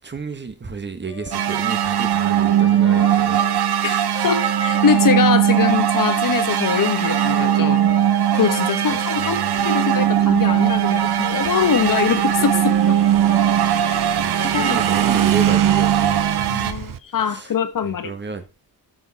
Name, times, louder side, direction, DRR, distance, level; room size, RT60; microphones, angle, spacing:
voice 1, 0.0-3.4 8.9-9.5 14.1-16.7 17.2-17.5 17.8-18.4, right 4 dB, 25° right, 1.6 m, -31 dB
Guitar, 1.1-15.6, left 5 dB, 85° left, 2.2 m, -38 dB
sound 1, 1.3-16.7, right 10 dB, 75° right, 1.1 m, -19 dB
voice 2, 3.8-7.8 8.3-13.0 13.9-14.8 16.5-18.1, left 7 dB, 55° left, 1.3 m, -23 dB
Motorcycle / Engine, 10.0-17.0, right 9 dB, 55° right, 0.9 m, -30 dB
14.0 x 7.0 x 4.2 m
wide cardioid pair, 155°, 39 cm